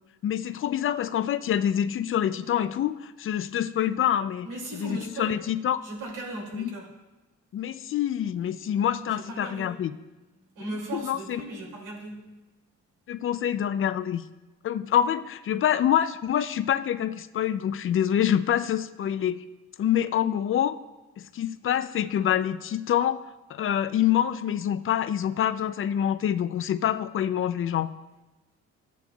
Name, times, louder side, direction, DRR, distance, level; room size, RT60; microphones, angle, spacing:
voice 1, 0.2-5.8 6.5-6.7 7.5-9.9 10.9-11.4 13.1-14.2 14.6-19.4 19.8-20.8 21.2-27.9, left 10 dB, 45° left, 14 dB, 0.4 m, -26 dB
voice 2, 4.4-5.4 5.8-6.9 9.0-9.7 10.4-12.2, right 2 dB, 85° right, -1 dB, 2.5 m, -37 dB
11.5 x 9.2 x 2.3 m, 1.1 s
cardioid pair, 90°, 30 cm